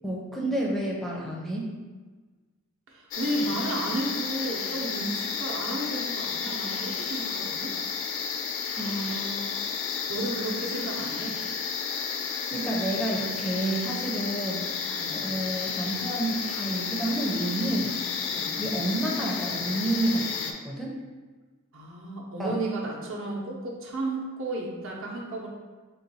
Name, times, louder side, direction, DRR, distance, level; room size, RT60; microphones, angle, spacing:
voice 1, 0.0-1.7 8.7-9.6 12.5-14.7 15.1-18.0 18.6-20.4 20.6-20.9 22.4-22.5, right 1 dB, ahead, -3 dB, 0.4 m, -29 dB
voice 2, 2.9-7.8 10.1-11.3 15.0-15.2 18.3-18.6 21.7-25.5, right 1 dB, 65° right, -2 dB, 0.7 m, -33 dB
sound 1, 3.1-20.5, left 6 dB, 65° left, 0.4 m, -32 dB
3.8 x 2.2 x 4.1 m, 1.3 s
head